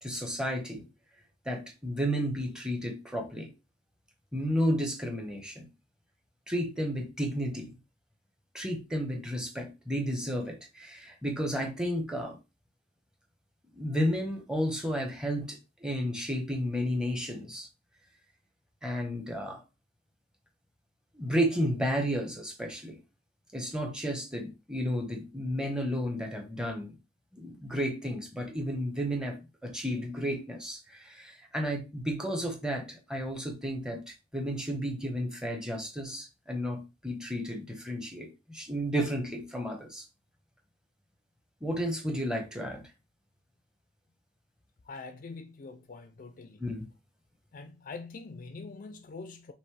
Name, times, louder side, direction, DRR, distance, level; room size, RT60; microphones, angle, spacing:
voice 1, 0.0-0.8 1.4-3.5 4.3-5.6 6.5-7.8 8.5-12.4 13.7-17.7 18.8-19.6 21.1-23.0 23.5-26.9 27.3-34.0 34.3-40.0 41.6-42.8 46.6-46.9, equal, 5° right, 1.0 m, -32 dB
voice 2, 44.9-46.6 47.5-49.5, left 4 dB, 45° left, 0.4 m, -44 dB
5.2 x 3.1 x 3.3 m
head